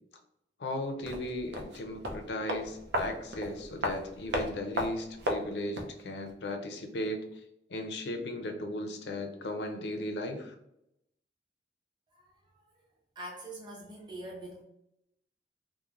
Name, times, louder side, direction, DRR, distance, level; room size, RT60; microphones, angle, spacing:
voice 1, 0.6-7.2 7.7-10.5, left 1 dB, 80° left, 5 dB, 0.5 m, -36 dB
sound 1, 1.0-6.0 6.3-6.4, equal, 80° right, 0.5 m, -35 dB
voice 2, 12.1-12.7 13.2-14.6, right 1 dB, 25° right, -3 dB, 0.7 m, -44 dB
3.0 x 2.1 x 2.4 m, 0.82 s
head